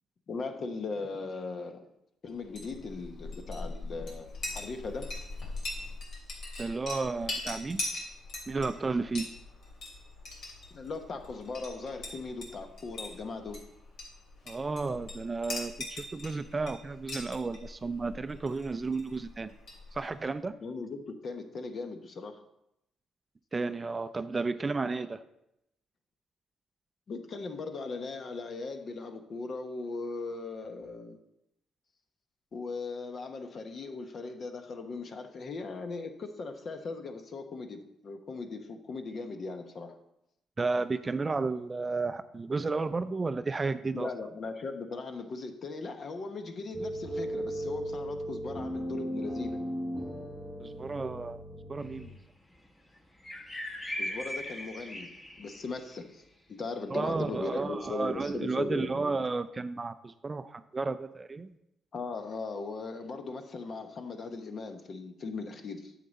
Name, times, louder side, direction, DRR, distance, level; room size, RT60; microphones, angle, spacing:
voice 1, 0.3-1.9 2.2-5.1 10.7-13.6 20.6-22.4 27.1-31.2 32.5-39.9 43.9-49.6 54.0-55.1 55.4-59.0 61.9-65.9, left 3 dB, 50° left, 6 dB, 1.0 m, -39 dB
Chink clink, 2.4-20.2, left 2 dB, 70° left, 3.0 m, -42 dB
voice 2, 6.6-7.9 8.5-9.2 14.5-19.5 19.9-20.5 23.5-25.2 40.6-44.1 50.6-51.4 51.7-52.1 56.9-61.5, right 3 dB, 30° right, 12 dB, 0.4 m, -32 dB
sound 1, 46.7-52.1, equal, 5° right, 1.2 m, -36 dB
sound 2, 51.8-52.0 53.2-55.8, left 1 dB, 20° left, 1.3 m, -38 dB
9.1 x 6.8 x 4.0 m, 0.82 s
cardioid pair, 90°, 0 cm